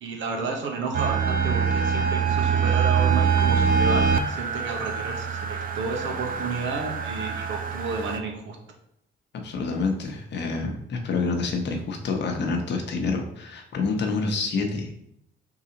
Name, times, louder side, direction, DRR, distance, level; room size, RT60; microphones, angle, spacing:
voice 1, 0.0-8.6, right 4 dB, 70° right, 2 dB, 1.1 m, -31 dB
sound 1, 0.9-8.2, right 6 dB, 45° right, 0.5 m, -24 dB
voice 2, 9.3-14.9, left 4 dB, 60° left, 3 dB, 0.9 m, -27 dB
4.7 x 3.8 x 2.9 m, 0.74 s
cardioid pair, 90°, 20 cm